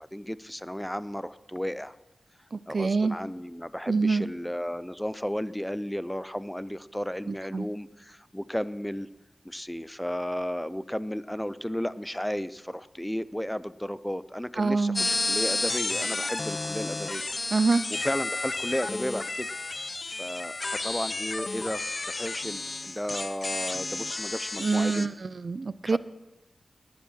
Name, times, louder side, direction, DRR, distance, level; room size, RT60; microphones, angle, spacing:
voice 1, 0.0-2.0 2.7-9.1 9.4-17.2 17.9-19.5 19.8-25.1 25.9-26.0, equal, 5° left, 16 dB, 0.5 m, -34 dB
voice 2, 2.5-3.2 3.9-4.2 7.5-7.7 14.6-15.1 17.5-17.8 24.6-26.0, right 4 dB, 60° right, 16 dB, 0.5 m, -25 dB
sound 1, 15.0-25.1, left 3 dB, 45° left, 0.7 m, -32 dB
19.0 x 8.4 x 6.4 m, 1.1 s
wide cardioid pair, 75°, 0 cm